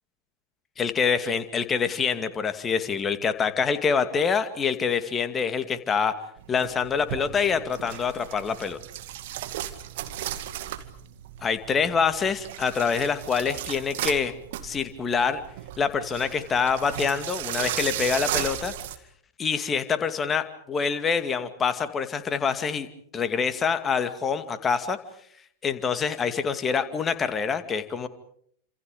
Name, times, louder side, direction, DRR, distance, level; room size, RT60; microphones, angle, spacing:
voice 1, 0.8-6.1 6.5-8.8 11.4-14.3 14.6-15.4 15.8-18.7 19.4-22.9 23.1-25.0 25.6-28.1, left 6 dB, 20° left, 10 dB, 2.4 m, -26 dB
sound 1, 6.4-19.0, right 12 dB, 55° right, 2.2 m, -35 dB
30.0 x 27.5 x 5.2 m, 0.65 s
figure-of-eight pair, 90°, 0 cm